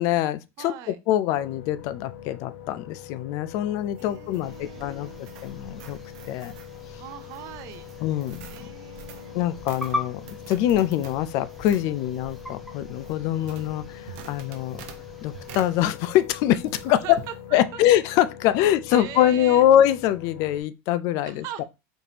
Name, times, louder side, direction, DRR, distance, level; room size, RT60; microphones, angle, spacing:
voice 1, 0.0-5.1 5.4-6.0 6.3-6.5 8.0-8.5 9.3-14.8 15.2-17.2 17.5-21.6, left 12 dB, 50° left, 0.3 m, -24 dB
voice 2, 0.6-1.0 4.0-5.2 7.0-7.9 8.5-9.4 16.9-17.8 18.9-19.7 21.2-21.6, right 10 dB, 50° right, 0.5 m, -40 dB
sound 1, 1.3-20.6, left 9 dB, 70° left, 0.9 m, -43 dB
sound 2, 3.8-16.4 16.7-17.4, right 7 dB, 80° right, 0.7 m, -47 dB
sound 3, 4.4-15.9, left 2 dB, ahead, 0.7 m, -41 dB
4.2 x 3.3 x 2.8 m
cardioid pair, 160°, 7 cm